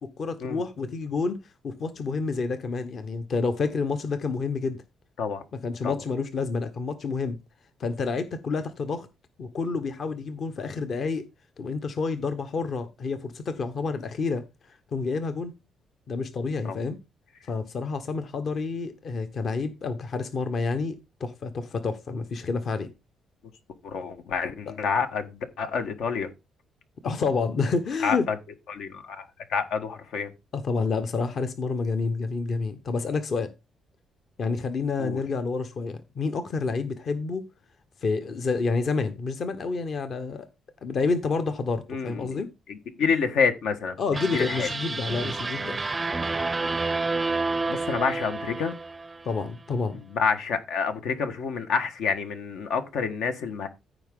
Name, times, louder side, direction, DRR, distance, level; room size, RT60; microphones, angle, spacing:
voice 1, 0.2-1.4 1.6-4.8 5.6-7.4 7.8-9.1 9.4-11.2 11.6-14.4 14.9-15.5 16.1-17.0 17.5-22.9 27.0-28.2 30.5-33.5 34.4-37.4 38.0-40.5 40.8-42.5 44.0-45.8 49.2-50.0, left 4 dB, 45° left, 1.0 m, -29 dB
voice 2, 23.8-26.3 28.0-28.3 28.7-30.3 35.0-35.2 41.9-42.4 42.7-43.9 44.3-44.7 47.3-47.4 47.7-48.7 50.1-53.7, left 6 dB, 80° left, 1.5 m, -28 dB
sound 1, 44.1-49.4, right 3 dB, 20° right, 0.5 m, -29 dB
14.5 x 4.9 x 3.8 m
cardioid pair, 135°, 0 cm